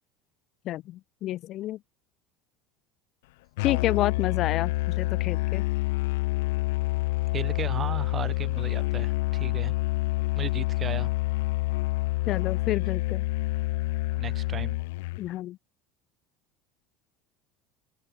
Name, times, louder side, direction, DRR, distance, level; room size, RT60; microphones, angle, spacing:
voice 1, 0.6-1.8 3.6-5.6 12.3-13.2 15.2-15.6, left 14 dB, 45° left, 2.4 m, -29 dB
Musical instrument, 3.6-15.3, left 21 dB, 90° left, 0.9 m, -27 dB
voice 2, 7.3-9.7 10.4-11.1 14.2-14.8, right 8 dB, 25° right, 0.9 m, -36 dB
open air
cardioid pair, 150°, 0 cm